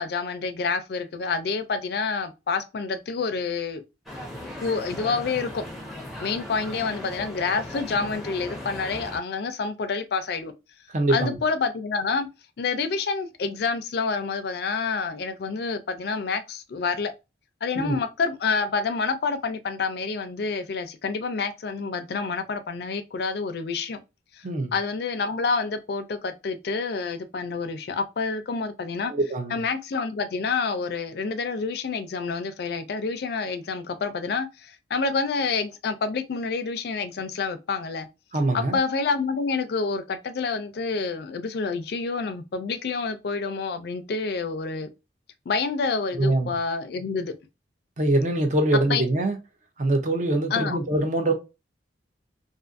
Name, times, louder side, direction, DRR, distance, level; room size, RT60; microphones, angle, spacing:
voice 1, 0.0-3.8 4.6-5.6 6.2-10.5 11.1-12.3 12.6-17.1 17.6-24.0 24.4-24.5 24.7-29.1 29.5-38.1 38.5-44.9 45.5-47.3 48.9-49.0 50.5-50.8, left 4 dB, 60° left, 0.4 m, -28 dB
sound 1, 4.1-9.2, left 1 dB, ahead, 0.7 m, -37 dB
voice 2, 10.9-11.4 17.7-18.0 24.4-24.7 29.1-29.6 38.3-38.8 46.1-46.5 48.0-49.4 49.8-51.3, right 2 dB, 45° right, 0.6 m, -23 dB
2.4 x 2.4 x 2.5 m
head